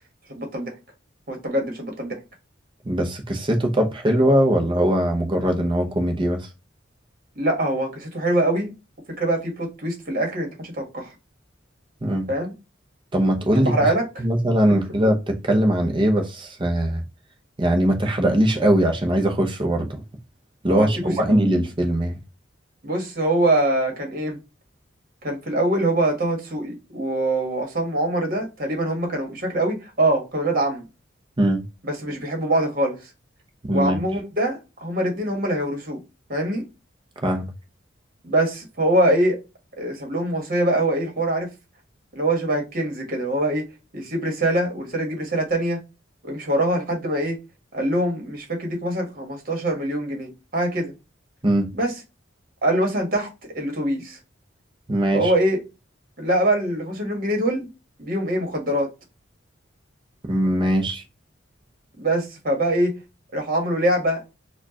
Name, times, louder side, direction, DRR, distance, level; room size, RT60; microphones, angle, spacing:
voice 1, 0.3-0.7 1.3-2.2 7.4-8.7 9.2-11.1 12.3-12.5 13.5-14.2 20.7-20.9 21.3-21.4 22.8-24.4 25.2-30.8 31.8-33.0 33.7-36.0 36.3-36.6 38.2-39.4 39.8-41.5 42.1-43.7 43.9-45.8 46.2-47.4 47.7-50.9 51.7-51.9 52.6-53.3 53.5-54.2 55.1-55.6 56.2-57.7 58.0-58.9 62.0-62.9 63.3-64.2, right 1 dB, 50° right, 1.4 m, -23 dB
voice 2, 2.8-6.5 12.0-12.3 13.1-13.9 14.2-17.0 17.6-20.0 20.6-22.1 31.4-31.7 33.6-34.0 37.2-37.5 51.4-51.7 54.9-55.3 60.2-61.0, right 1 dB, 25° right, 0.8 m, -21 dB
4.4 x 2.4 x 2.8 m
head